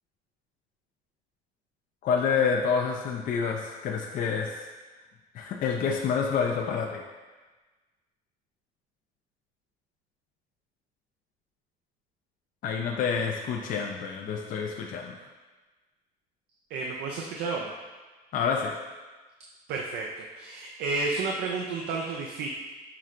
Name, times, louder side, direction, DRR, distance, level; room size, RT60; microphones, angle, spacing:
voice 1, 2.0-4.7 5.3-7.0 12.6-15.2 18.3-18.7, left 6 dB, 55° left, 1 dB, 0.4 m, -28 dB
voice 2, 16.7-17.7 19.7-22.5, right 3 dB, 80° right, -1 dB, 0.5 m, -31 dB
5.7 x 3.2 x 2.5 m, 1.3 s
cardioid pair, 110°, 17 cm